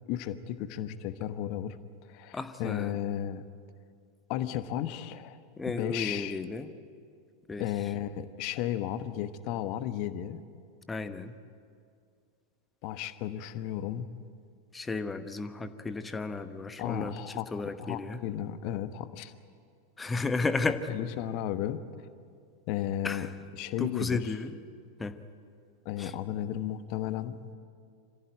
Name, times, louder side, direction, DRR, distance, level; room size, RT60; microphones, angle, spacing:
voice 1, 0.1-1.8 2.1-3.4 4.3-5.4 5.7-6.4 7.6-10.4 12.8-14.1 16.8-17.5 17.8-19.3 20.9-21.8 22.7-23.3 23.6-24.3 25.8-27.4, left 11 dB, 45° left, 12 dB, 1.1 m, -34 dB
voice 2, 2.3-3.0 5.6-6.7 7.5-7.6 10.9-11.3 14.7-17.1 17.5-18.2 20.0-20.8 23.0-23.3 23.8-24.5 25.0-25.1 26.0-26.1, left 3 dB, 10° left, 10 dB, 1.1 m, -33 dB
26.0 x 15.5 x 9.2 m, 2.3 s
figure-of-eight pair, 90°, 0 cm